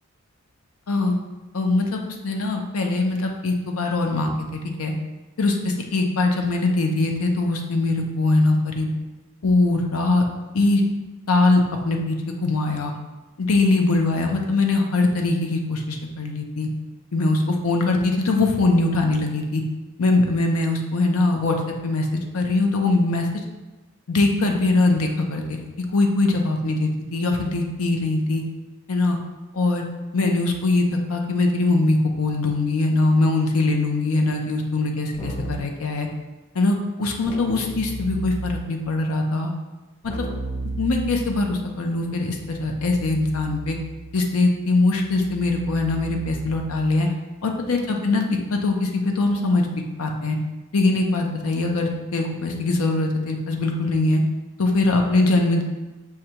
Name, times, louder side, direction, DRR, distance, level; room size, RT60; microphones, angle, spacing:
voice 1, 1.5-4.9 5.4-8.9 9.4-10.2 10.5-10.8 11.3-12.9 13.4-16.7 17.1-19.6 20.0-22.1 22.3-23.3 24.1-25.6 25.9-28.4 28.9-29.2 29.5-29.8 30.1-36.1 36.5-39.5 40.0-40.3 40.8-43.8 44.1-47.1 47.4-49.7 50.0-50.4 50.7-54.2 54.6-55.6, left 2 dB, 70° left, 3 dB, 0.6 m, -22 dB
Keyboard (musical), 35.1-35.8 37.2-38.8 40.0-47.1, right 2 dB, 20° left, 0.5 m, -35 dB
6.4 x 2.3 x 2.8 m, 1.2 s
head